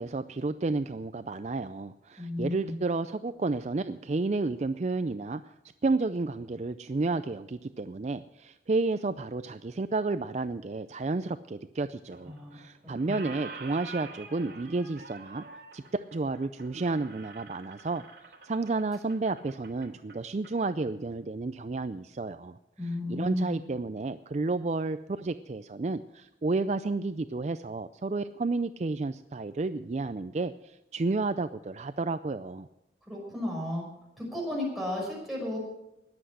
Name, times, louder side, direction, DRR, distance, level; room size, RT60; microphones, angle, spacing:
voice 1, 0.0-5.5 5.8-18.0 18.4-32.7, right 3 dB, 40° right, 11 dB, 0.4 m, -31 dB
voice 2, 2.2-2.7 12.2-12.5 13.1-13.3 22.8-23.5 33.1-33.8 34.2-35.6, left 1 dB, ahead, -3 dB, 5.9 m, -33 dB
Squeak, 12.1-12.7 12.9-20.6, right 4 dB, 60° right, 2.9 m, -47 dB
20.0 x 8.0 x 6.2 m, 0.93 s
head